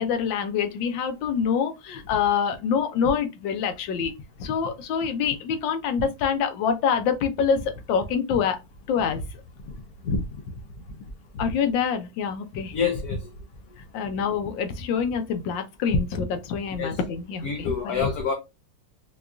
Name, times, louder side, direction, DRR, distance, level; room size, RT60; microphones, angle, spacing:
voice 1, 0.0-4.1 4.4-8.6 8.9-9.2 11.4-12.8 13.9-18.0, left 7 dB, 85° left, 1.4 m, -26 dB
voice 2, 12.7-13.2 16.8-17.0 17.4-18.3, left 5 dB, 65° left, 1.0 m, -26 dB
4.6 x 2.3 x 2.5 m
omnidirectional pair, 2.0 m